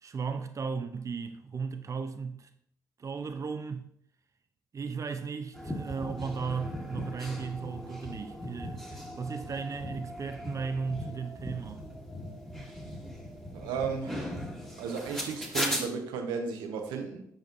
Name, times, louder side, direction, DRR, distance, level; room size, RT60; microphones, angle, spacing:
voice 1, 0.0-2.5 3.0-3.9 4.7-11.9, right 5 dB, 40° right, 0.6 m, -36 dB
sound 1, 5.5-15.8, equal, 5° left, 1.7 m, -38 dB
voice 2, 13.5-14.3 14.8-17.3, right 5 dB, 85° right, 0.9 m, -34 dB
8.1 x 5.1 x 2.5 m
supercardioid pair, 55°, 8 cm